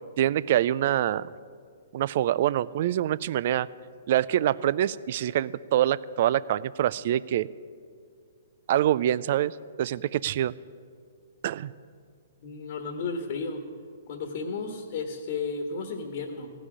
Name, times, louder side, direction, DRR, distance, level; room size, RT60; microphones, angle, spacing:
voice 1, 0.2-1.3 1.9-3.7 4.1-7.5 8.7-10.5 11.4-11.7, right 12 dB, 55° right, 19 dB, 0.3 m, -25 dB
voice 2, 12.4-13.6 14.1-16.5, left 4 dB, 55° left, 4 dB, 1.4 m, -33 dB
15.5 x 6.2 x 9.5 m, 2.1 s
hypercardioid pair, 130°, 0 cm